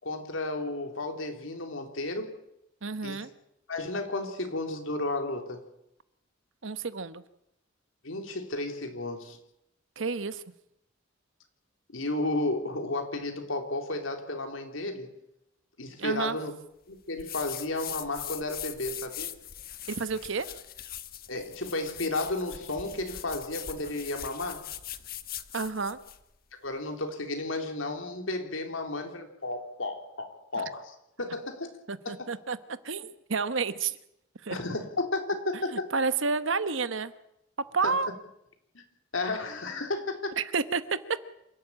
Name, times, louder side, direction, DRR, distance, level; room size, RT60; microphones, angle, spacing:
voice 1, 0.0-2.4 3.0-3.2 3.7-5.6 8.0-9.4 11.9-15.1 15.8-16.5 16.9-19.3 21.3-24.7 26.6-31.7 32.0-32.3 34.5-35.9 37.8-37.9 39.1-40.4, left 2 dB, 90° left, 5 dB, 3.3 m, -33 dB
voice 2, 2.8-3.3 6.6-7.2 10.0-10.4 16.0-16.4 19.9-20.5 25.5-26.0 30.5-30.6 31.9-32.6 32.8-34.0 34.4-34.6 35.7-37.1 37.7-38.1 40.4-41.0, right 4 dB, 70° right, 13 dB, 1.1 m, -30 dB
sound 1, 17.2-26.2, left 11 dB, 50° left, 1.2 m, -41 dB
27.0 x 12.5 x 8.8 m, 0.81 s
head